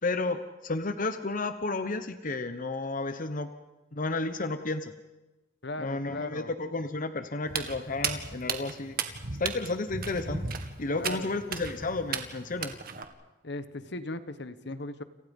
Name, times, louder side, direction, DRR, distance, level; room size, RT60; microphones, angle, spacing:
voice 1, 0.0-3.5 3.9-4.9 5.8-9.0 9.4-10.5 10.8-12.8, left 3 dB, 45° left, 9 dB, 1.1 m, -32 dB
voice 2, 5.6-6.5 10.9-11.4 13.4-15.0, left 2 dB, 65° left, 12 dB, 1.3 m, -38 dB
Walk footsteps, 7.4-13.0, right 6 dB, 55° right, 2.0 m, -35 dB
29.5 x 28.0 x 5.5 m, 1.1 s
head